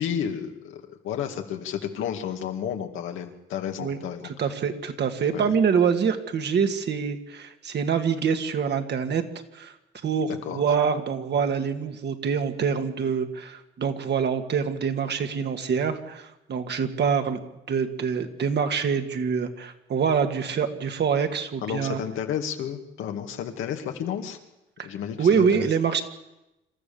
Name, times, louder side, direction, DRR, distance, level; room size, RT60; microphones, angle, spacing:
voice 1, 0.0-4.3 5.3-5.5 10.3-10.6 21.6-24.4 24.8-25.7, left 8 dB, 85° left, 5 dB, 2.4 m, -32 dB
voice 2, 4.2-9.2 9.5-9.7 10.0-17.4 17.7-22.0 24.8-24.9 25.2-26.0, right 6 dB, 60° right, 7 dB, 2.1 m, -25 dB
26.5 x 14.0 x 7.1 m, 0.93 s
cardioid pair, 90°, 20 cm